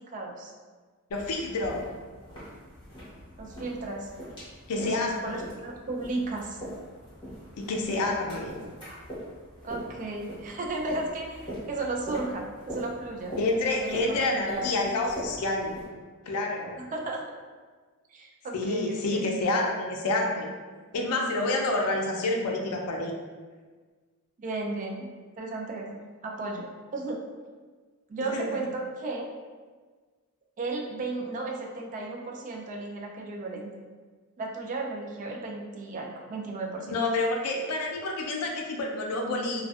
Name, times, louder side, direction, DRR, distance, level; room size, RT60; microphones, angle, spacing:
voice 1, 0.1-0.5 3.4-4.1 4.7-6.6 9.6-13.4 13.7-14.7 16.8-17.2 18.1-19.3 24.4-25.1 25.4-26.7 26.9-27.2 28.1-29.3 30.6-33.8 34.4-36.9, right 2 dB, 35° right, 0 dB, 0.3 m, -34 dB
voice 2, 1.1-1.9 4.7-5.3 7.6-8.5 13.4-15.7 16.3-16.8 18.5-20.5 20.9-23.1 28.2-28.5 36.9-39.6, left 2 dB, 85° left, 1 dB, 0.4 m, -28 dB
sound 1, 1.1-15.9, equal, 20° left, 1.1 m, -43 dB
2.5 x 2.2 x 2.3 m, 1.4 s
head